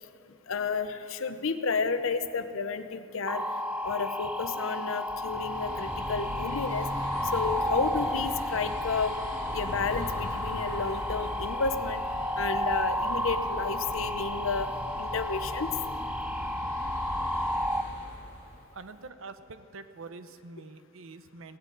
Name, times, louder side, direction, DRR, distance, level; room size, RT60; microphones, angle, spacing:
voice 1, 0.5-3.4 3.8-6.9 7.3-9.1 9.5-12.0 12.4-14.7 15.0-15.7, left 4 dB, 75° left, 10 dB, 0.7 m, -31 dB
sound 1, 3.3-17.8, left 1 dB, 5° right, 0.4 m, -32 dB
sound 2, 5.1-18.6, equal, 35° right, 2.7 m, -40 dB
voice 2, 18.7-21.6, right 3 dB, 75° right, 11 dB, 0.7 m, -45 dB
17.5 x 16.5 x 3.9 m, 2.5 s
head